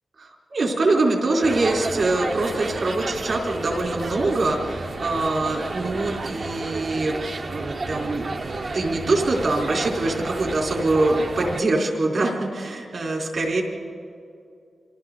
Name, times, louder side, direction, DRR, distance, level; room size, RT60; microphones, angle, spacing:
voice 1, 0.2-8.3 8.7-13.6, right 2 dB, 55° right, 0 dB, 3.8 m, -24 dB
sound 1, 1.4-11.6, right 3 dB, 40° right, 0.8 m, -31 dB
28.5 x 24.5 x 4.0 m, 2.4 s
wide cardioid pair, 145°, 0 cm